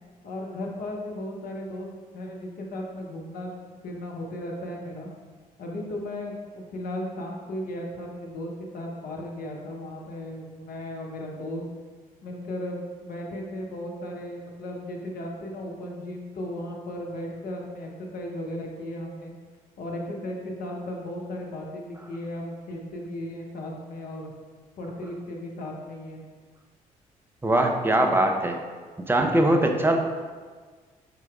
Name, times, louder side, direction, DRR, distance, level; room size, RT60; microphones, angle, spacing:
voice 1, 0.2-1.9 2.1-3.5 3.8-5.1 5.6-11.7 12.2-19.3 19.8-24.3 24.8-26.2, left 1 dB, 55° left, 0 dB, 0.7 m, -35 dB
voice 2, 27.4-28.6 29.0-30.0, right 1 dB, 10° right, 3 dB, 0.5 m, -21 dB
4.4 x 3.7 x 2.3 m, 1.5 s
figure-of-eight pair, 40°, 19 cm